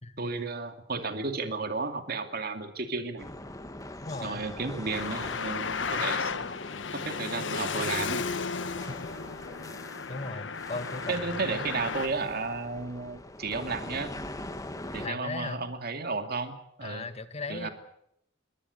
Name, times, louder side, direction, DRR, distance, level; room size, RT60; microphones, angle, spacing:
voice 1, 0.2-3.3 4.2-6.4 6.9-8.3 11.1-14.1 14.9-17.1 17.5-17.7, right 3 dB, 55° right, 7 dB, 2.5 m, -33 dB
sound 1, 3.2-15.1, left 1 dB, 20° left, 1.8 m, -43 dB
voice 2, 4.0-4.4 10.1-11.7 15.0-15.6 16.8-17.7, left 3 dB, 35° left, 10 dB, 1.9 m, -37 dB
Traffic noise roadway noise, 4.9-12.1, left 5 dB, 85° left, 1.2 m, -34 dB
23.5 x 18.0 x 8.4 m, 0.75 s
head